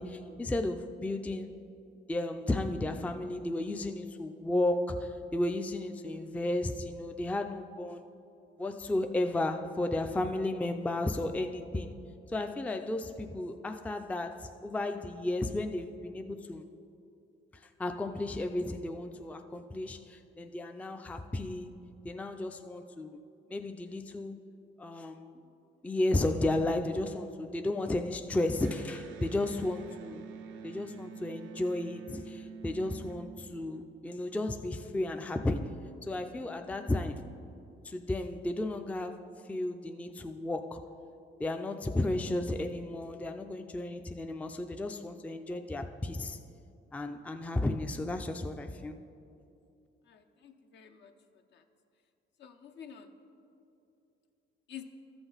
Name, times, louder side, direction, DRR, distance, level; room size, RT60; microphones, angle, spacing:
voice 1, 0.0-1.5 2.1-8.0 8.6-11.9 12.3-16.6 17.8-21.7 22.0-23.2 23.5-24.4 24.8-25.3 25.8-30.3 30.6-35.7 36.0-37.2 37.8-39.2 39.5-40.8 41.4-46.4 46.9-48.9, left 2 dB, 5° left, 6 dB, 0.4 m, -33 dB
Electric guitar, 28.6-34.1, right 6 dB, 75° right, 0.6 m, -47 dB
voice 2, 50.1-51.1 51.5-51.6 52.4-53.1 54.7-54.8, left 9 dB, 60° left, 7 dB, 0.7 m, -49 dB
13.0 x 6.1 x 3.9 m, 2.7 s
cardioid pair, 90°, 20 cm